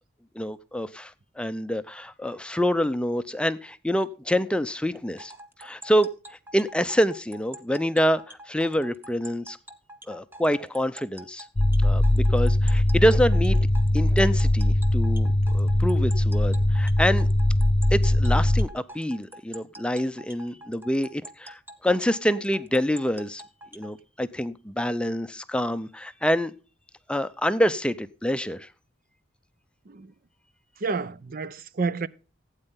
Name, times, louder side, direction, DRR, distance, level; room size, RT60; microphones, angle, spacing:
voice 1, 0.4-5.3 5.6-9.6 10.1-11.5 11.8-13.7 13.9-17.3 17.9-23.4 23.7-26.5 27.1-28.7, equal, 5° left, 0.5 m, -26 dB
sound 1, 5.2-23.9, right 1 dB, 10° right, 1.1 m, -45 dB
sound 2, 11.6-18.7, left 1 dB, 35° left, 0.8 m, -21 dB
voice 2, 30.8-32.1, right 4 dB, 45° right, 0.5 m, -29 dB
16.0 x 8.9 x 3.7 m
head